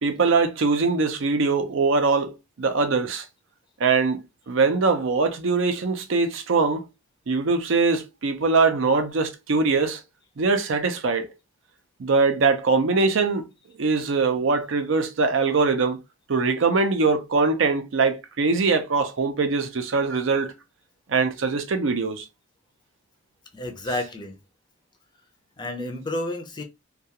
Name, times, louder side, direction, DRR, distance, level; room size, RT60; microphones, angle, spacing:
voice 1, 0.0-3.2 3.8-6.8 7.3-10.0 10.4-11.3 12.0-13.5 13.8-16.0 16.3-20.5 21.1-22.3, right 4 dB, 65° right, 0.5 m, -22 dB
voice 2, 23.5-24.4 25.6-26.6, left 1 dB, 20° left, 0.5 m, -30 dB
2.3 x 2.3 x 2.8 m
head